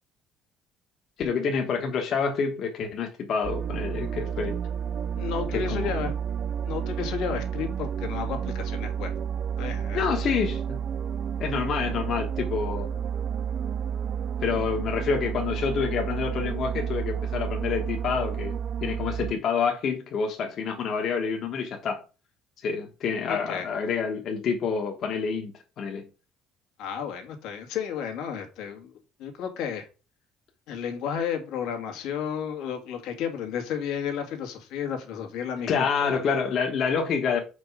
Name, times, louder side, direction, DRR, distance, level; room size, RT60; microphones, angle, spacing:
voice 1, 1.2-4.5 5.5-6.1 9.9-10.8 11.4-13.0 14.4-22.0 22.6-26.0 35.7-37.4, left 6 dB, 50° left, 2 dB, 1.3 m, -28 dB
sound 1, 3.4-19.3, right 8 dB, 40° right, 0.3 m, -31 dB
voice 2, 5.2-6.1 6.6-9.1 9.6-10.3 23.3-23.7 26.8-29.9 30.7-36.2, left 8 dB, 80° left, 4 dB, 1.9 m, -32 dB
5.3 x 5.2 x 4.9 m, 0.32 s
cardioid pair, 145°, 0 cm